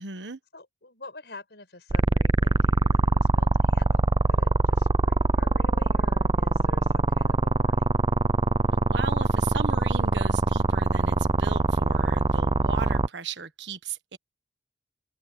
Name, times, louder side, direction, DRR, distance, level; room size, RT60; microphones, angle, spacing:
voice 1, 0.0-0.4 8.9-14.2, right 5 dB, 90° right, 1.3 m, -37 dB
voice 2, 0.5-7.9, left 2 dB, 70° left, 5.9 m, -48 dB
sound 1, 1.9-13.1, right 3 dB, 30° right, 0.4 m, -22 dB
open air
head